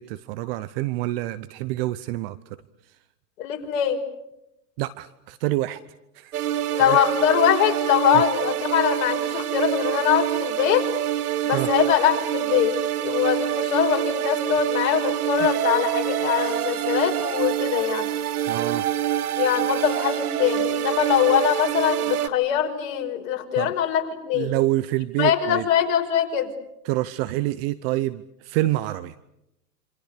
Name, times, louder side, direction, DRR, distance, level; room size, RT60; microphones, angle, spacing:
voice 1, 0.0-2.4 4.8-5.8 6.1-6.3 6.8-7.0 8.1-8.2 11.5-11.7 18.5-18.8 23.6-23.7 24.3-25.7 26.8-29.2, right 17 dB, 35° right, 16 dB, 1.0 m, -27 dB
voice 2, 3.4-4.0 6.7-10.8 11.4-12.7 13.0-18.1 19.4-24.5 25.2-26.5, left 10 dB, 55° left, 4 dB, 5.5 m, -22 dB
sound 1, 6.3-22.3, right 12 dB, 65° right, 1.8 m, -26 dB
28.0 x 27.0 x 6.8 m, 0.84 s
hypercardioid pair, 125°, 49 cm